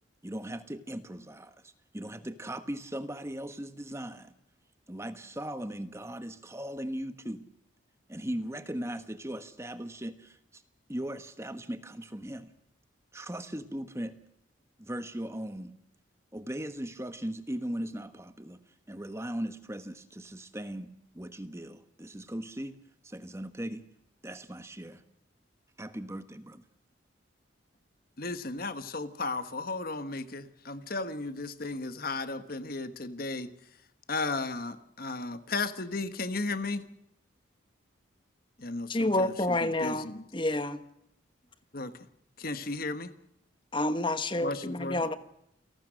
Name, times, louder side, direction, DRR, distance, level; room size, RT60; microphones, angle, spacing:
voice 1, 0.2-4.3 4.9-7.5 8.1-10.6 10.9-12.5 13.1-14.1 14.8-15.7 16.3-18.6 18.9-22.8 23.0-23.9 24.2-25.0 25.8-26.6, right 1 dB, 15° right, 1.2 m, -38 dB
voice 2, 28.2-33.5 34.1-36.8 38.6-40.3 41.7-41.9 42.4-43.1 44.4-45.0, left 3 dB, 50° left, 1.4 m, -35 dB
voice 3, 38.9-40.8 43.7-45.2, left 1 dB, 25° left, 1.4 m, -29 dB
29.0 x 18.5 x 6.5 m
head